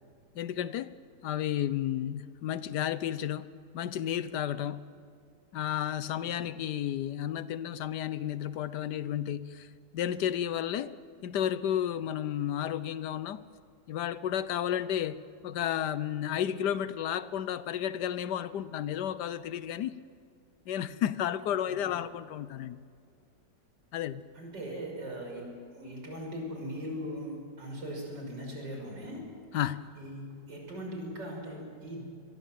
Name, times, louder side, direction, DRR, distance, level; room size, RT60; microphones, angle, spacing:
voice 1, 0.4-0.9 1.2-3.5 3.7-4.8 5.5-9.7 9.9-10.9 11.2-13.4 13.9-15.2 15.4-20.0 20.7-22.8 23.9-24.2 29.5-29.8, left 10 dB, 70° left, 1.4 m, -32 dB
voice 2, 6.2-6.5 21.7-21.9 24.3-29.2 29.9-32.0, equal, 80° right, 6.4 m, -40 dB
25.0 x 22.5 x 7.5 m
omnidirectional pair, 1.9 m